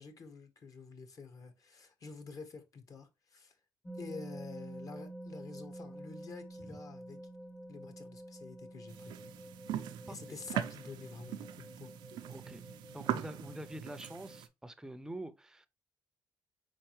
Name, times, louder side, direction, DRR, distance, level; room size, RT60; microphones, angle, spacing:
voice 1, 0.0-3.5 3.9-7.2 7.7-9.1 10.1-11.9, left 4 dB, 50° left, 1.0 m, -49 dB
sound 1, 3.9-14.4, right 1 dB, 20° left, 0.8 m, -49 dB
sound 2, 8.9-14.5, right 11 dB, 90° right, 0.5 m, -41 dB
voice 2, 10.1-10.4 12.3-12.6 12.9-15.7, right 1 dB, 10° right, 0.5 m, -46 dB
4.5 x 3.8 x 3.1 m
cardioid pair, 90°, 8 cm